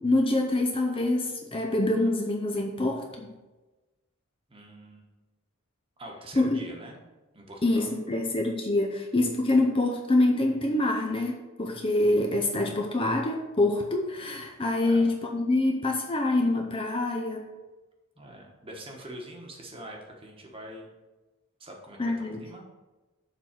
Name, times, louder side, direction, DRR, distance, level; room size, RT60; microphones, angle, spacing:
voice 1, 0.0-3.3 6.4-6.6 7.6-17.5 22.0-22.4, left 2 dB, 25° left, 2 dB, 0.6 m, -25 dB
voice 2, 4.5-5.1 6.0-7.0 7.3-7.9 14.8-15.1 18.2-20.9 21.6-22.6, right 1 dB, 25° right, 0 dB, 1.2 m, -44 dB
7.2 x 4.0 x 5.9 m, 1.2 s
head